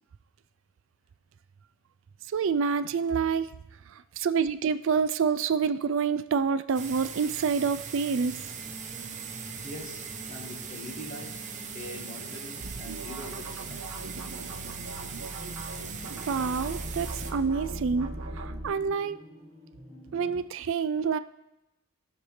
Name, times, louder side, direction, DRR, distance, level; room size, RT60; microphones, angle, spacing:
voice 1, 2.3-3.5 4.2-8.5 16.3-19.2 20.1-21.2, right 6 dB, 60° right, 13 dB, 0.4 m, -27 dB
sound 1, 6.7-17.3, right 6 dB, 35° right, 0.9 m, -40 dB
sound 2, 8.2-20.4, equal, 10° right, 2.2 m, -47 dB
voice 2, 9.6-11.5 11.7-13.8 20.2-20.4, left 1 dB, 35° left, 1 dB, 1.4 m, -43 dB
sound 3, 12.6-18.7, right 2 dB, 75° right, 1.1 m, -39 dB
18.5 x 6.6 x 3.2 m, 0.95 s
head